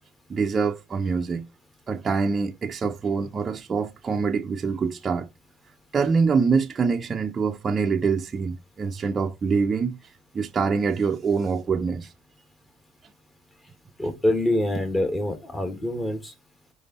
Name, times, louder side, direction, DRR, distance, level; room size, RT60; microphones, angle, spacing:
voice 1, 0.3-1.5 1.9-5.3 5.9-12.1, right 5 dB, 30° right, 0.6 m, -25 dB
voice 2, 14.0-16.3, left 1 dB, 15° left, 1.9 m, -25 dB
5.1 x 4.8 x 4.1 m
supercardioid pair, 90°, 0 cm